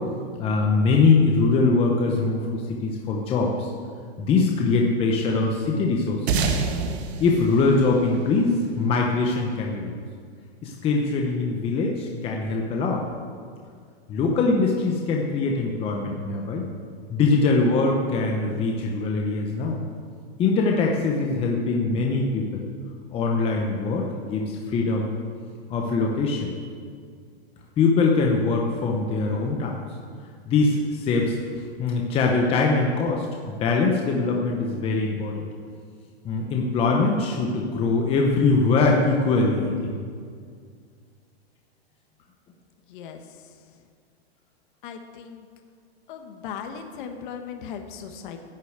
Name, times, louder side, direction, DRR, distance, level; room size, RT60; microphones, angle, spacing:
voice 1, 0.4-3.7 4.2-6.4 7.2-9.9 10.6-13.0 14.1-16.7 17.1-19.8 20.4-22.6 23.1-25.1 25.7-26.5 27.8-29.8 30.5-31.4 31.8-35.4 36.2-39.9, left 3 dB, 20° left, 0 dB, 0.9 m, -22 dB
sound 1, 6.3-9.1, right 4 dB, 80° right, 1.5 m, -27 dB
voice 2, 42.9-43.5 44.8-45.5 46.1-48.4, left 7 dB, 50° left, 5 dB, 1.3 m, -38 dB
11.5 x 6.5 x 8.0 m, 2.1 s
supercardioid pair, 155°, 32 cm